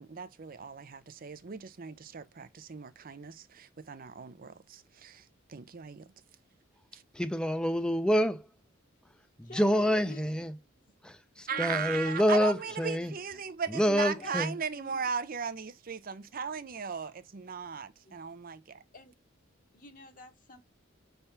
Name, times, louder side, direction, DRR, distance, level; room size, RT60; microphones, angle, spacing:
voice 1, 0.0-6.0 6.9-7.0 11.5-18.8, right 6 dB, 45° right, 0.5 m, -38 dB
voice 2, 7.1-8.5 9.4-10.5 11.0-13.1 13.7-14.6, equal, 5° left, 0.5 m, -27 dB
voice 3, 9.4-10.5 10.7-10.8 11.5-12.4 12.6-13.5 14.0-14.4 14.7-15.0 18.0-18.2 18.9-19.1 19.7-20.6, left 2 dB, 40° left, 1.1 m, -49 dB
5.6 x 3.4 x 5.7 m
head